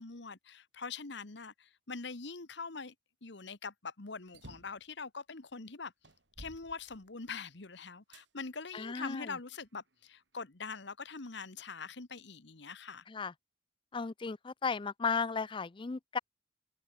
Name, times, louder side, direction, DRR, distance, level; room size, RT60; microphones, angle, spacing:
voice 1, 0.0-2.9 3.2-5.9 6.4-13.0, left 4 dB, 65° left, 1.4 m, -43 dB
sound 1, 4.3-4.8 5.5-5.6 6.0-7.5 8.1-8.3 9.0-10.0, right 1 dB, 65° right, 3.7 m, -54 dB
voice 2, 8.7-9.4 13.1-13.3 13.9-16.2, left 5 dB, 25° left, 0.4 m, -35 dB
head